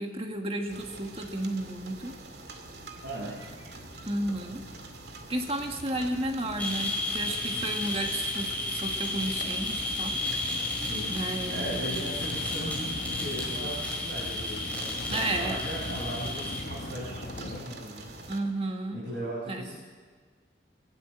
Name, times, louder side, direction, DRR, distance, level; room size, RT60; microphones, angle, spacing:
voice 1, 0.0-2.2 4.1-4.6 5.3-10.2 11.1-12.0 15.1-15.6 18.3-19.0 19.5-19.6, right 1 dB, 30° right, 3 dB, 1.6 m, -32 dB
truck pickup pull up slow reverse gear and stop on gravel, 0.6-17.6, left 1 dB, 55° left, 1.2 m, -42 dB
sound 1, 0.7-18.4, right 3 dB, 70° right, 2.3 m, -46 dB
voice 2, 3.0-3.4 7.5-7.9 10.7-18.1 18.9-19.7, right 1 dB, 85° right, -5 dB, 6.0 m, -38 dB
sound 2, 6.6-16.6, left 2 dB, 10° left, 4.3 m, -33 dB
23.5 x 18.0 x 7.6 m, 1.5 s
head